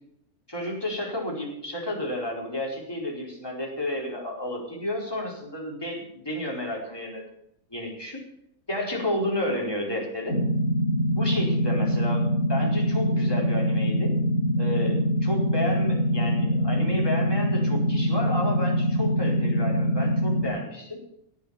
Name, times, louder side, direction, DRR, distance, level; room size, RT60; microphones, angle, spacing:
voice 1, 0.5-7.2 7.7-8.2 8.7-10.4 11.1-14.1 14.6-21.0, left 1 dB, 15° left, -3 dB, 4.6 m, -31 dB
sound 1, 10.3-20.5, equal, 50° left, 3.2 m, -24 dB
17.0 x 8.7 x 7.1 m, 0.75 s
omnidirectional pair, 1.5 m